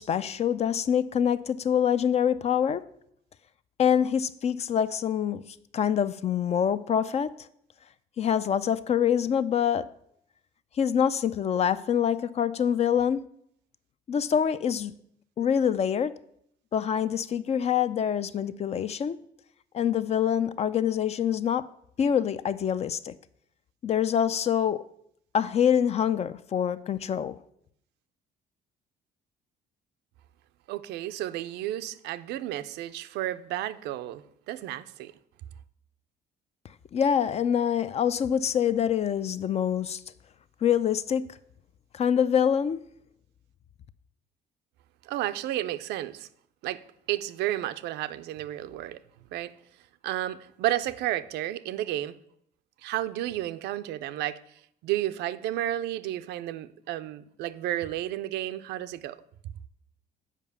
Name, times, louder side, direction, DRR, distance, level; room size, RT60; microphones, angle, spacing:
voice 1, 0.0-2.8 3.8-5.4 5.7-7.3 8.2-9.9 10.8-13.2 14.1-14.9 15.4-16.1 16.7-19.2 19.7-21.7 22.0-23.1 23.8-24.9 25.3-27.3 36.9-40.0 40.6-41.3 41.9-42.8, left 8 dB, 40° left, 0.4 m, -25 dB
voice 2, 30.7-35.1 45.0-46.3 46.6-49.0 49.3-49.5 50.0-52.2 52.8-54.4 54.8-59.2, right 13 dB, 80° right, 0.5 m, -32 dB
7.5 x 5.0 x 6.7 m
cardioid pair, 110°, 17 cm